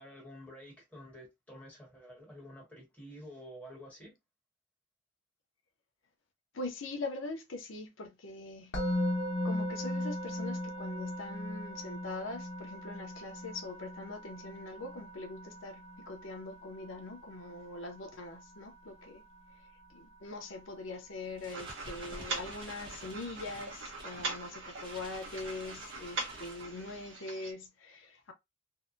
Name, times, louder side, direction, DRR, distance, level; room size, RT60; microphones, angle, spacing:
voice 1, 0.0-4.1 20.2-20.3, equal, 10° left, 1.0 m, -50 dB
voice 2, 6.5-8.7 9.4-19.2 19.9-28.3, left 2 dB, 85° left, 0.6 m, -42 dB
Musical instrument, 8.7-19.8, left 1 dB, 60° left, 1.0 m, -38 dB
sound 1, 21.2-27.1, right 1 dB, 25° right, 0.8 m, -50 dB
sound 2, 21.5-27.5, right 3 dB, 75° right, 0.7 m, -42 dB
2.8 x 2.1 x 2.4 m
head